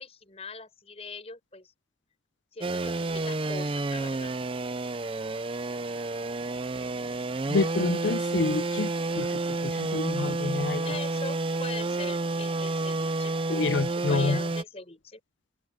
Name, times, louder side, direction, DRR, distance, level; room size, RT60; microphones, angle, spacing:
voice 1, 0.0-1.7 2.5-4.4 10.8-13.3 13.9-15.2, left 3 dB, 35° left, 6.6 m, -41 dB
sound 1, 2.6-14.6, right 2 dB, 30° right, 0.5 m, -30 dB
voice 2, 7.5-11.0 13.5-14.4, left 3 dB, 80° left, 0.6 m, -28 dB
head